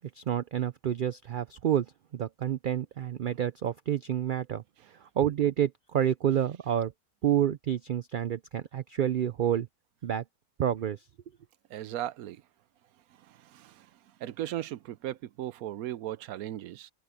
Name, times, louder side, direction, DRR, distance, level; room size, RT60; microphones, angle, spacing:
voice 1, 0.1-1.9 2.1-4.6 5.0-6.9 7.2-9.7 10.0-10.2 10.6-11.0, right 10 dB, 70° right, 0.5 m, -28 dB
voice 2, 11.7-12.4 13.3-13.9 14.2-16.9, right 13 dB, 90° right, 1.1 m, -37 dB
omnidirectional pair, 1.5 m